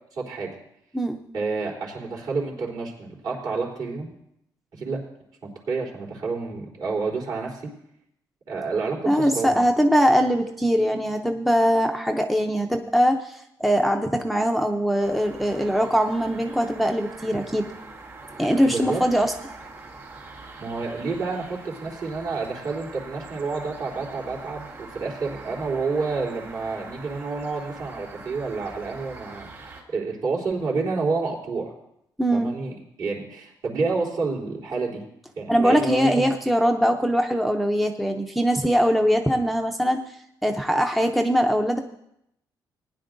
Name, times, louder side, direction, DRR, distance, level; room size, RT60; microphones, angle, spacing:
voice 1, 0.1-0.5 1.3-4.1 4.7-5.0 5.4-7.6 8.5-9.6 18.6-19.0 20.6-31.7 32.3-35.0 35.4-36.3, right 4 dB, 60° right, -3 dB, 3.5 m, -29 dB
voice 2, 9.1-17.7 18.4-19.3 32.2-32.5 35.5-40.0 40.4-41.8, equal, ahead, 4 dB, 0.5 m, -22 dB
sound 1, 15.0-29.8, right 3 dB, 40° right, 3.2 m, -43 dB
19.5 x 10.5 x 2.6 m, 0.78 s
cardioid pair, 150°, 8 cm